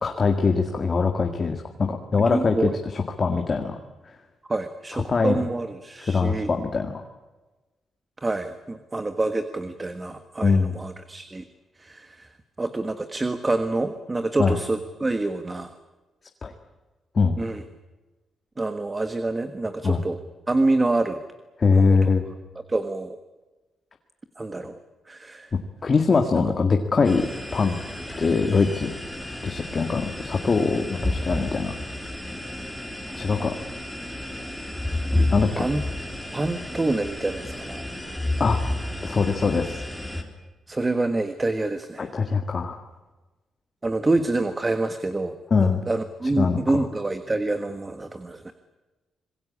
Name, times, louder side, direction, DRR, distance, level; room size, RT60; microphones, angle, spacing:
voice 1, 0.0-3.8 4.9-5.4 6.0-7.0 10.4-10.7 14.4-14.6 16.4-16.5 17.2-17.4 19.8-20.0 21.6-22.3 25.8-27.3 27.5-27.8 28.2-28.9 29.4-31.7 33.1-33.5 35.3-35.6 38.4-38.6 39.0-39.8 42.0-42.8 45.5-45.8 46.4-46.6, left 4 dB, 35° left, 4 dB, 2.0 m, -22 dB
voice 2, 2.2-2.8 4.5-6.5 8.2-11.4 11.8-12.3 12.6-15.7 17.4-17.6 18.6-20.2 20.5-21.2 21.7-22.1 22.7-23.2 24.4-24.8 25.1-25.5 35.6-35.8 36.3-37.8 40.7-42.1 43.8-45.3 45.9-48.5, right 2 dB, 20° right, 9 dB, 1.5 m, -27 dB
sound 1, 27.0-40.2, left 1 dB, ahead, 3.9 m, -31 dB
26.5 x 21.0 x 8.6 m, 1.2 s
cardioid pair, 110°, 0 cm